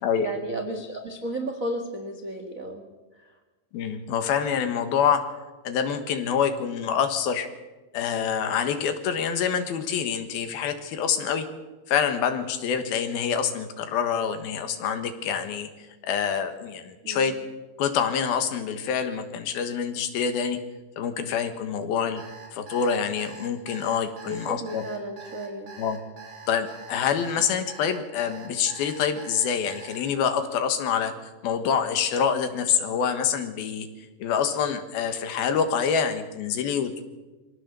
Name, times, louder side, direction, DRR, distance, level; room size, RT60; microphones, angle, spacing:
voice 1, 0.1-2.8 3.2-3.3 17.0-17.4 24.2-25.7, right 1 dB, 75° right, 5 dB, 0.7 m, -33 dB
voice 2, 3.7-5.2 5.6-7.5 7.9-11.5 11.9-17.3 17.8-20.6 21.0-22.2 22.5-24.8 25.8-26.0 26.5-31.1 31.4-33.9 34.2-37.0, left 7 dB, 70° left, 8 dB, 3.2 m, -26 dB
Alarm, 22.2-30.0, right 5 dB, 50° right, 4.3 m, -44 dB
23.5 x 17.5 x 6.9 m, 1.2 s
omnidirectional pair, 4.5 m